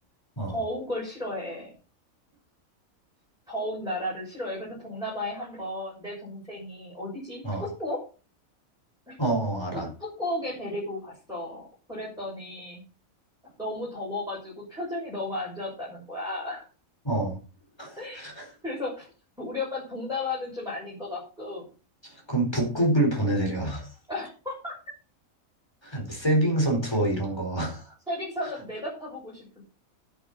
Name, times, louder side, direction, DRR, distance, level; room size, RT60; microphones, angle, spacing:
voice 1, 0.5-1.7 3.5-8.0 9.1-9.2 9.7-12.8 13.6-16.6 18.0-18.2 18.6-19.1 19.4-21.6 24.1-24.7 28.1-29.6, left 1 dB, 5° right, -6 dB, 6.3 m, -34 dB
voice 2, 9.2-9.9 17.0-17.4 17.8-18.5 22.0-23.9 25.8-27.8, right 1 dB, 20° left, 2 dB, 4.6 m, -26 dB
11.0 x 10.5 x 4.2 m, 0.35 s
omnidirectional pair, 1.4 m